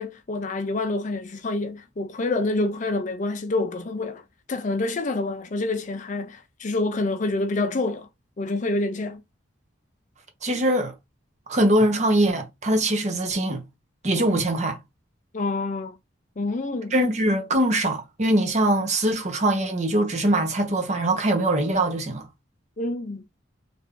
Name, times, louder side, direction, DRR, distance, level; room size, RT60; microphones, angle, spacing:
voice 1, 0.0-4.2 4.5-8.1 8.4-9.2 15.3-16.0 16.4-16.9 22.8-23.2, left 2 dB, 40° left, 0.5 m, -27 dB
voice 2, 10.4-10.9 11.5-13.6 14.0-14.8 16.9-22.3, right 1 dB, 35° right, 1.0 m, -22 dB
3.4 x 2.6 x 3.7 m
head